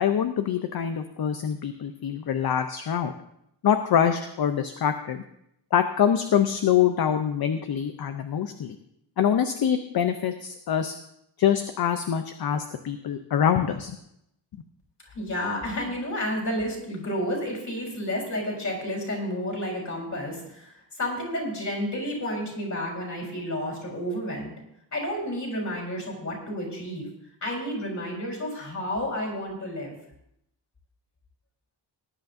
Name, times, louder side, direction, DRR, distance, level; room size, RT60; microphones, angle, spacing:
voice 1, 0.0-3.1 3.6-5.2 5.7-8.8 9.2-11.0 11.4-14.0, left 8 dB, 55° left, 8 dB, 0.7 m, -25 dB
voice 2, 15.0-24.5 24.9-27.1 27.4-29.9, equal, 40° left, -1 dB, 4.1 m, -31 dB
19.0 x 10.5 x 2.7 m, 0.77 s
wide cardioid pair, 170°, 44 cm